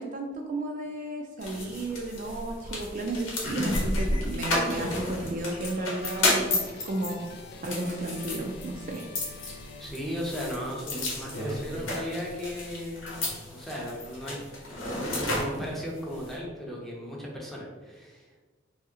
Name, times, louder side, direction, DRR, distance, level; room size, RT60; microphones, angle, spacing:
voice 1, 0.0-7.2 7.6-9.1, right 2 dB, 45° right, 1 dB, 0.4 m, -33 dB
sound 1, 1.4-16.3, left 1 dB, 90° left, 1.1 m, -32 dB
sound 2, 5.2-10.6, left 3 dB, 55° left, 0.4 m, -47 dB
voice 2, 9.5-13.2 13.5-14.4 14.9-18.4, equal, ahead, -4 dB, 0.6 m, -36 dB
3.1 x 2.8 x 3.7 m, 1.3 s
head